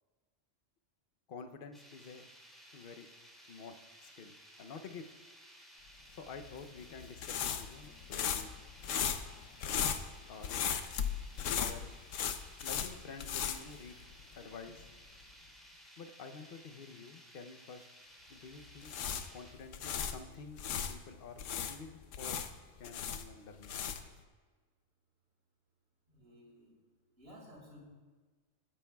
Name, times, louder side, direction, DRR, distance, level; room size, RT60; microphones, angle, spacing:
voice 1, 1.3-2.2 2.7-3.1 3.5-5.1 6.1-9.1 10.3-10.7 11.6-12.0 12.6-14.1 14.3-14.9 16.0-17.9 18.3-18.9 19.3-20.6 20.9-22.4 22.8-23.7, left 5 dB, 50° left, 6 dB, 0.9 m, -49 dB
sound 1, 1.7-19.5, equal, ahead, 2.7 m, -57 dB
sound 2, 6.3-14.4 14.7-14.9 18.6-20.9 21.4-24.2, left 8 dB, 85° left, 1.1 m, -37 dB
voice 2, 26.1-26.7 27.2-27.8, equal, 55° right, -5 dB, 3.5 m, -55 dB
20.0 x 9.9 x 2.3 m, 1.4 s
omnidirectional pair, 1.3 m